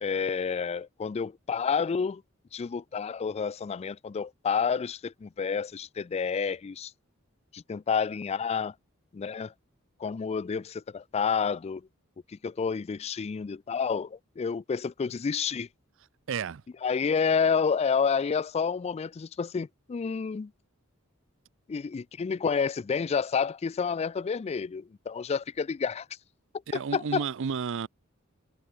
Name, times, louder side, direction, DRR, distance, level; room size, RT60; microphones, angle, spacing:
voice 1, 0.0-2.2 2.5-6.9 7.5-8.7 9.1-9.5 10.0-11.8 12.3-15.7 16.8-20.5 21.7-26.1 26.7-27.2, left 6 dB, 30° left, 0.3 m, -29 dB
voice 2, 16.3-16.6 26.7-27.9, right 6 dB, 65° right, 0.5 m, -31 dB
head